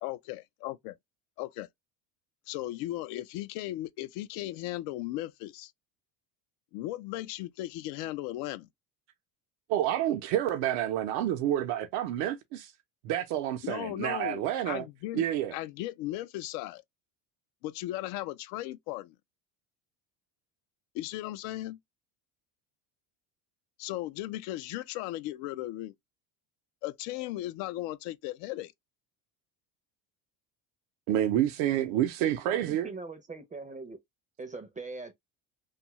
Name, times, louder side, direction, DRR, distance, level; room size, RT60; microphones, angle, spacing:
voice 1, 0.0-1.0 1.4-1.7 2.5-5.7 6.7-8.7 13.6-15.3 15.5-16.8 17.6-19.1 20.9-21.8 23.8-25.9 26.8-28.7, left 15 dB, 80° left, 0.5 m, -36 dB
voice 2, 9.7-12.7 13.0-14.8 15.1-15.5 31.1-32.9, right 12 dB, 80° right, 0.6 m, -29 dB
voice 3, 32.2-34.0 34.4-35.1, right 3 dB, 15° right, 0.4 m, -41 dB
2.7 x 2.3 x 2.9 m
cardioid pair, 120°, 47 cm